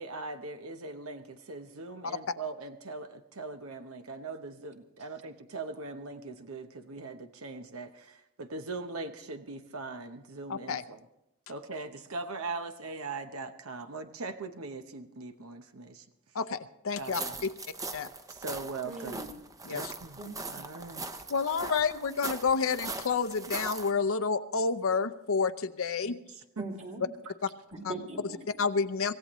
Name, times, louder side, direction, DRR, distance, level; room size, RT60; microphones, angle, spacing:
voice 1, 0.0-11.0 11.5-16.0 17.0-17.4 18.3-19.2 19.7-20.2 20.5-21.1 26.0-26.7 27.2-27.3, right 3 dB, 70° right, 8 dB, 0.9 m, -40 dB
voice 2, 10.5-10.8 16.3-16.6 16.8-17.2 17.9-18.1 19.6-19.9 21.3-26.2 27.8-27.9 28.6-29.1, left 5 dB, 65° left, 12 dB, 0.7 m, -29 dB
sound 1, 17.0-23.9, right 3 dB, 15° right, 0.7 m, -40 dB
voice 3, 18.8-19.3 20.2-20.5 26.6-27.0 27.7-28.6, right 2 dB, 30° right, 1 dB, 2.5 m, -41 dB
25.0 x 16.0 x 3.1 m, 0.87 s
head